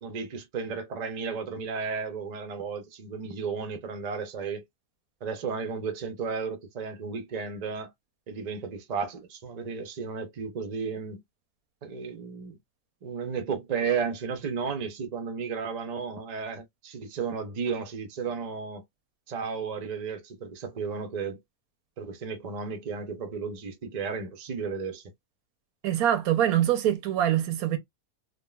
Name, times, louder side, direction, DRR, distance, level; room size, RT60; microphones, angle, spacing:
voice 1, 0.0-4.6 5.2-7.9 8.3-11.2 11.8-12.6 13.0-18.8 19.3-21.4 22.0-25.0, right 5 dB, 50° right, 0.5 m, -33 dB
voice 2, 25.8-27.8, right 11 dB, 85° right, 1.2 m, -24 dB
3.6 x 2.2 x 2.3 m
omnidirectional pair, 1.5 m